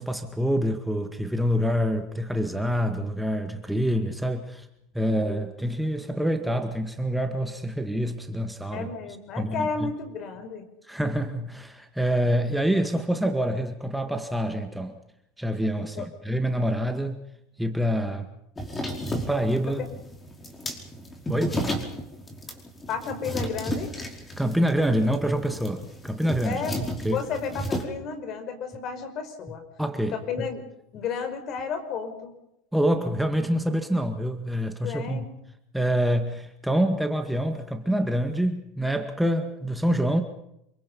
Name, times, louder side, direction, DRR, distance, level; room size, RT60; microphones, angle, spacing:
voice 1, 0.0-4.7 4.9-8.9 9.4-9.9 10.9-14.9 15.4-17.2 17.6-18.3 19.3-19.8 21.3-21.6 24.4-26.6 27.0-27.2 29.8-30.5 32.7-35.3 35.7-40.2, equal, ahead, 5 dB, 2.0 m, -26 dB
voice 2, 8.7-10.6 16.0-16.1 19.7-19.8 22.9-23.9 26.4-29.6 30.1-30.6 30.9-32.4 34.8-35.3, left 5 dB, 45° left, 7 dB, 5.4 m, -32 dB
sound 1, 18.6-27.8, equal, 20° left, 5.1 m, -33 dB
27.5 x 24.0 x 5.6 m, 0.81 s
hypercardioid pair, 100°, 0 cm